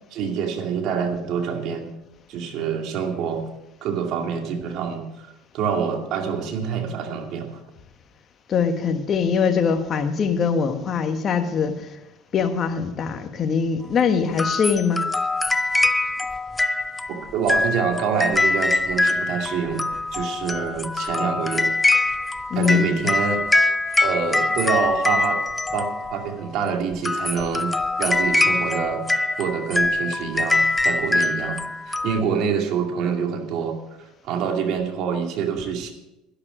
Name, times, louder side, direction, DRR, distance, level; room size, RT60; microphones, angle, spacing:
voice 1, 0.1-1.9 2.3-3.4 3.8-5.3 5.5-7.5 17.3-19.9 20.1-21.7 22.5-23.4 24.0-25.4 25.7-29.1 29.4-31.6 31.9-35.9, right 6 dB, 60° right, 2.3 m, -26 dB
voice 2, 8.5-11.9 12.3-15.1 22.5-23.2, left 6 dB, 40° left, 1.4 m, -22 dB
sound 1, 14.4-26.3 26.9-32.2, left 2 dB, 10° left, 0.6 m, -23 dB
11.5 x 11.5 x 5.1 m
supercardioid pair, 90°, 0 cm